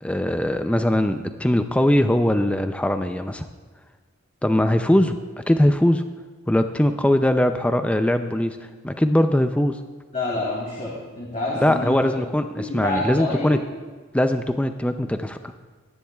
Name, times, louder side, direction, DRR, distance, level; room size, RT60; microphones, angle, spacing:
voice 1, 0.0-3.5 4.4-6.0 6.5-8.6 8.8-9.8 11.6-13.6 14.1-15.4, left 1 dB, 5° left, 8 dB, 0.4 m, -21 dB
voice 2, 10.1-13.6, left 2 dB, 35° left, -6 dB, 2.4 m, -28 dB
20.5 x 10.0 x 2.3 m, 1.4 s
head